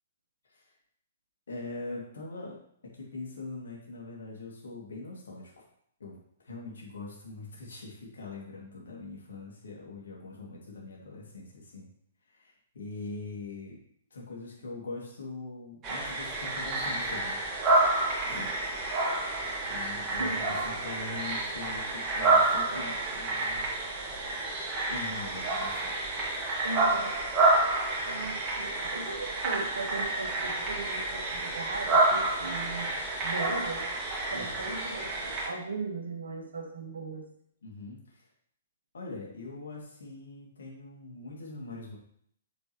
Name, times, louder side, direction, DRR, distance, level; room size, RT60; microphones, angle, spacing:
voice 1, 1.5-2.6 3.0-5.6 6.0-11.9 12.3-13.8 14.1-17.4 18.3-18.5 19.7-23.7 24.9-25.9 34.3-34.7 37.6-38.3 38.9-42.0, left 3 dB, 65° left, -3 dB, 2.7 m, -42 dB
sound 1, 15.8-35.5, right 2 dB, 25° right, 2.2 m, -29 dB
voice 2, 19.8-20.6 22.7-22.9 26.6-27.1 28.0-32.9 33.2-33.8 34.3-37.2, right 3 dB, 70° right, 2 dB, 1.7 m, -38 dB
7.9 x 6.8 x 3.2 m, 0.66 s
figure-of-eight pair, 115°, 0 cm